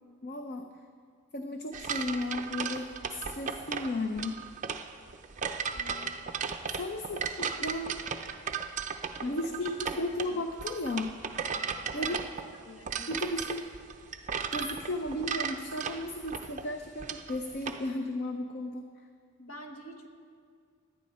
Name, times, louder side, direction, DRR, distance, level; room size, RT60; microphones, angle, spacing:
voice 1, 0.2-0.7 1.3-4.4 6.7-8.0 9.2-11.1 11.9-12.2 13.1-13.7 14.5-18.8, left 1 dB, 45° left, 5 dB, 0.6 m, -34 dB
sound 1, 1.7-17.8, right 6 dB, 35° right, 0.6 m, -36 dB
voice 2, 5.7-6.2 9.2-10.1 11.9-12.2 12.6-13.3 19.4-20.1, left 1 dB, 75° left, 3 dB, 1.5 m, -46 dB
18.5 x 10.5 x 4.3 m, 2.2 s
head